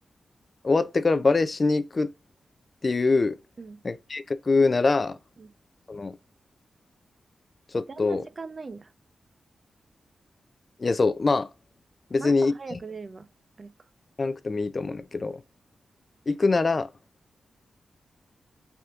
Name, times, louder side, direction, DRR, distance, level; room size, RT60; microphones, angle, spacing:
voice 1, 0.6-2.1 2.8-3.4 3.8-5.2 5.9-6.2 7.7-8.3 10.8-11.5 12.1-12.5 14.2-15.4 16.3-16.9, left 3 dB, 40° left, 0.3 m, -23 dB
voice 2, 7.9-8.9 12.2-13.3 13.6-13.7, right 4 dB, 45° right, 0.4 m, -40 dB
3.4 x 2.8 x 2.4 m
cardioid pair, 75°, 0 cm